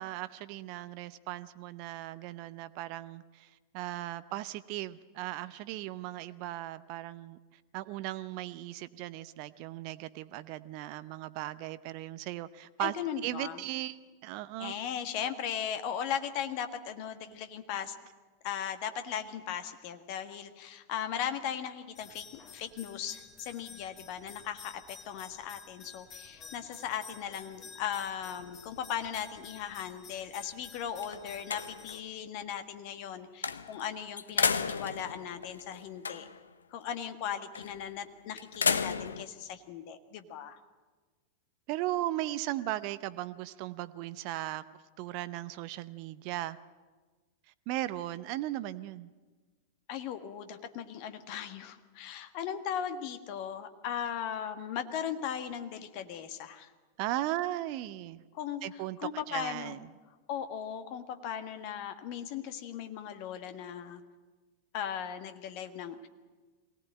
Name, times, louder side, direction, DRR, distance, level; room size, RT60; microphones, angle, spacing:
voice 1, 0.0-7.4 7.7-12.9 13.2-14.0 14.2-14.8 41.7-44.6 45.0-46.6 47.7-49.1 57.0-58.2 58.6-59.0 59.3-59.9, right 15 dB, 45° right, 15 dB, 0.7 m, -37 dB
voice 2, 12.8-13.6 14.6-17.9 18.4-36.3 36.7-40.6 49.9-56.7 58.3-59.8 60.3-64.0 64.7-66.1, left 9 dB, 45° left, 9 dB, 1.4 m, -38 dB
sound 1, 22.0-32.0, left 5 dB, 30° left, 2.0 m, -51 dB
sound 2, 28.4-29.9 30.4-30.5 30.9-32.1 33.4-33.8 34.2-36.5 37.5-37.9 38.4-39.3, left 5 dB, 70° left, 0.8 m, -33 dB
23.0 x 18.0 x 9.0 m, 1.3 s
figure-of-eight pair, 90°, 0 cm